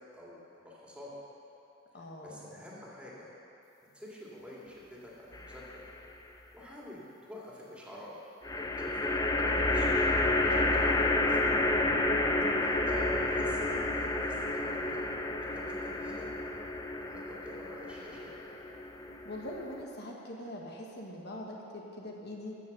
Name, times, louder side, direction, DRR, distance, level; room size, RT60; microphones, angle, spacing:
voice 1, 0.1-1.1 1.9-3.3 3.9-5.8 6.3-8.1 8.5-11.4 12.6-15.0 15.4-16.3 17.0-18.4, left 1 dB, 5° right, -6 dB, 2.3 m, -47 dB
voice 2, 1.9-2.5 12.2-12.6 19.2-22.6, left 1 dB, 55° left, -1 dB, 1.3 m, -43 dB
sound 1, 5.3-6.0 8.4-19.8, left 2 dB, 20° left, 0.6 m, -30 dB
14.5 x 6.9 x 6.8 m, 3.0 s
head